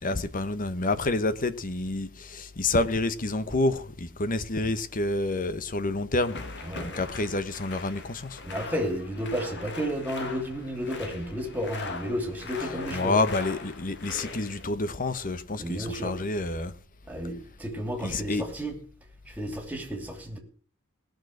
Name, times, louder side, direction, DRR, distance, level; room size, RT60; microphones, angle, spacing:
voice 1, 0.0-6.4 6.8-8.4 12.9-16.7 18.0-18.4, left 2 dB, 40° left, 1.0 m, -28 dB
sound 1, 6.2-14.7, left 3 dB, 55° left, 2.0 m, -40 dB
voice 2, 6.7-7.0 8.4-13.2 15.6-16.1 17.1-18.7 19.4-20.4, equal, 10° right, 2.9 m, -32 dB
18.5 x 6.5 x 7.9 m
head